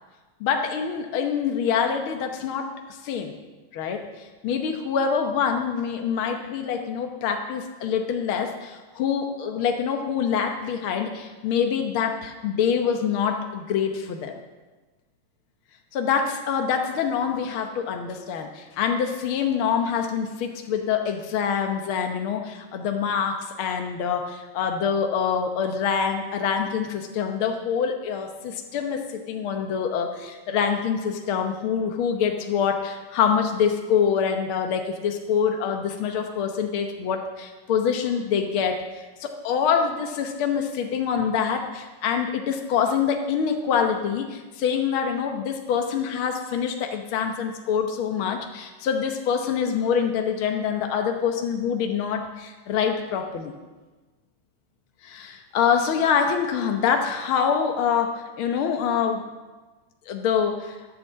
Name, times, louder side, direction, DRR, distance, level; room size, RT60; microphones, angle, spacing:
voice 1, 0.4-2.7 3.0-3.3 3.7-14.3 15.9-53.5 55.0-59.2 60.1-60.8, left 7 dB, 80° left, 4 dB, 1.1 m, -25 dB
13.0 x 9.4 x 7.4 m, 1.3 s
omnidirectional pair, 3.8 m